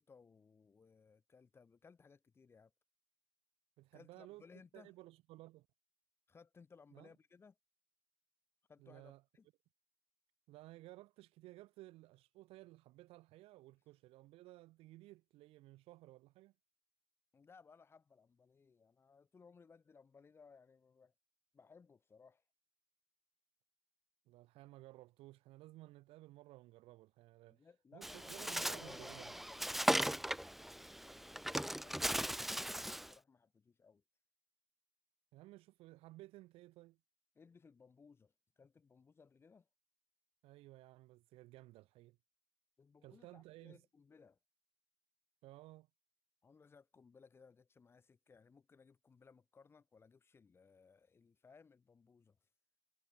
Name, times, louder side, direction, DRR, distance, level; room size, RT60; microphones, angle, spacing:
voice 1, 0.0-2.7 3.9-5.0 6.3-7.6 8.7-9.5 17.3-21.1 21.5-22.4 27.5-34.0 37.4-39.7 42.8-44.4 46.4-52.5, left 5 dB, 25° left, 5.4 m, -63 dB
voice 2, 3.8-5.7 6.9-7.1 8.8-9.2 10.5-16.5 24.3-27.7 27.9-29.3 35.3-37.0 40.4-42.2 43.0-43.8 45.4-45.9, right 18 dB, 75° right, 3.6 m, -57 dB
Bird, 28.0-33.1, equal, ahead, 1.5 m, -38 dB
cardioid pair, 135°, 10 cm